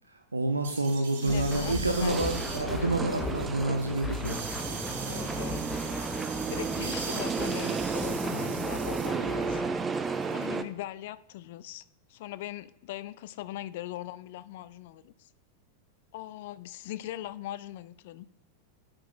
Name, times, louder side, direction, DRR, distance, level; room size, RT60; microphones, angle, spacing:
voice 1, 0.3-4.5, right 2 dB, 80° right, 5 dB, 0.5 m, -28 dB
sound 1, 0.6-10.6, right 5 dB, 55° right, 1.7 m, -42 dB
voice 2, 1.2-2.5 5.1-9.6 10.2-11.8 12.1-15.1 16.1-18.3, left 14 dB, 50° left, 16 dB, 0.3 m, -40 dB
sound 2, 1.3-9.8, left 2 dB, 10° left, 1.0 m, -38 dB
sound 3, 2.1-10.6, right 4 dB, 15° right, 0.4 m, -33 dB
10.0 x 7.6 x 2.4 m, 0.79 s
figure-of-eight pair, 90°, 0 cm